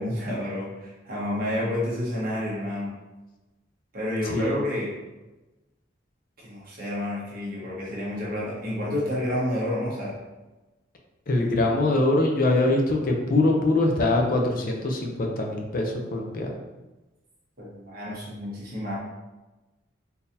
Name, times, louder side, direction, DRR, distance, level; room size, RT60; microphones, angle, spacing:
voice 1, 0.0-2.9 3.9-4.9 6.4-10.2 17.6-19.0, left 1 dB, 45° right, -5 dB, 1.1 m, -29 dB
voice 2, 4.3-4.6 11.3-16.6, left 2 dB, 45° left, 1 dB, 0.5 m, -23 dB
3.8 x 2.7 x 2.6 m, 1.1 s
head